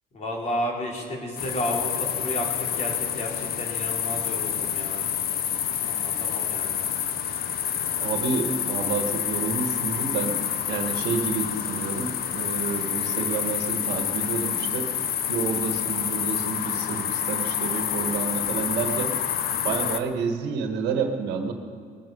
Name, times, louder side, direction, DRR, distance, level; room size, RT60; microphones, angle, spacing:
voice 1, 0.1-5.1 5.8-6.8, equal, 45° left, -1 dB, 3.5 m, -32 dB
sound 1, 1.4-20.0, left 9 dB, 65° left, 0.9 m, -28 dB
voice 2, 8.0-10.4 10.7-14.9 15.3-19.2 19.6-21.5, right 5 dB, 90° right, 6 dB, 1.4 m, -29 dB
20.5 x 9.5 x 5.4 m, 2.4 s
cardioid pair, 110°, 17 cm